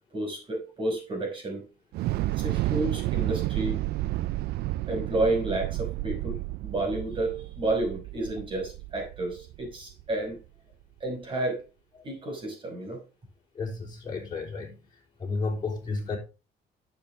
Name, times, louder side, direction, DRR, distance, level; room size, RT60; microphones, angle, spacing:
voice 1, 0.1-1.6 2.4-3.8 4.9-10.4 11.0-11.6 12.0-13.0, right 2 dB, 30° right, 5.6 m, -31 dB
Thunder / Explosion, 1.9-10.1, right 17 dB, 70° right, 0.4 m, -31 dB
voice 2, 13.6-14.7 15.2-16.2, left 3 dB, 25° left, 3.8 m, -32 dB
10.5 x 7.0 x 3.6 m
cardioid pair, 110°, 17 cm